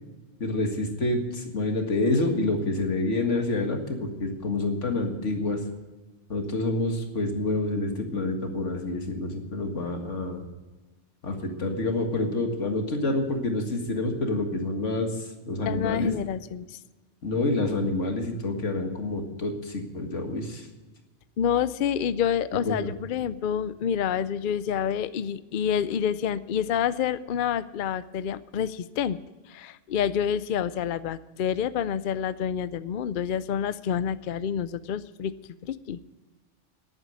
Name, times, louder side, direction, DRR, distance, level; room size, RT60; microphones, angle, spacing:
voice 1, 0.4-5.6 6.3-10.4 11.2-16.1 17.2-20.7 22.7-22.9, left 2 dB, 85° left, 4 dB, 2.2 m, -28 dB
voice 2, 15.7-16.8 21.4-29.2 29.5-35.3 35.6-36.0, left 8 dB, 55° left, 15 dB, 0.6 m, -28 dB
11.0 x 9.1 x 9.4 m, 1.3 s
omnidirectional pair, 1.2 m